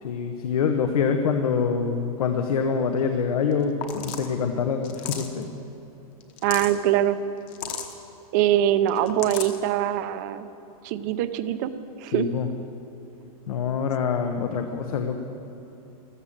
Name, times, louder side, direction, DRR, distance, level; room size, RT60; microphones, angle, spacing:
voice 1, 0.0-5.5 12.1-12.5 13.5-15.2, left 6 dB, 75° left, 6 dB, 1.2 m, -25 dB
sound 1, 3.5-3.6 3.8-4.3 4.8-5.4 6.2-6.8 7.5-7.9 8.9-9.6, left 8 dB, 30° left, 1.1 m, -34 dB
voice 2, 6.4-7.2 8.3-10.5 10.8-11.7 12.0-12.3, right 12 dB, 30° right, 12 dB, 0.6 m, -23 dB
14.0 x 14.0 x 7.4 m, 2.9 s
supercardioid pair, 180°, 19 cm